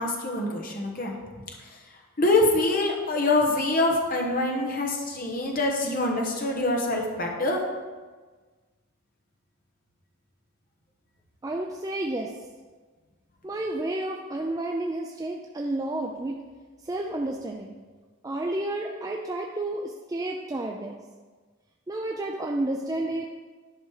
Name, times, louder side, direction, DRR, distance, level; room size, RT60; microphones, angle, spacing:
voice 1, 0.0-1.4 1.7-1.8 2.2-7.6, left 2 dB, 40° left, 1 dB, 1.1 m, -25 dB
voice 2, 11.4-12.4 13.4-16.4 16.8-17.8 18.2-21.0 21.9-23.3, right 1 dB, 15° right, 1 dB, 0.4 m, -31 dB
10.0 x 5.2 x 4.8 m, 1.4 s
head